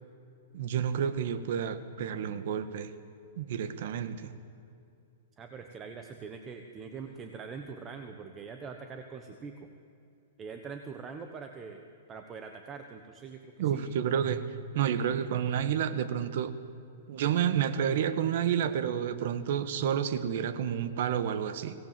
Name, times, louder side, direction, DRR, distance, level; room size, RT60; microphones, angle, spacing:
voice 1, 0.5-2.9 3.4-4.3 13.6-14.4 14.7-16.5 17.1-21.7, right 9 dB, 55° right, 12 dB, 1.6 m, -30 dB
voice 2, 5.4-9.7 10.4-11.8 12.1-13.9, right 5 dB, 20° right, 5 dB, 1.2 m, -43 dB
25.0 x 18.0 x 7.6 m, 2.6 s
hypercardioid pair, 160°, 0 cm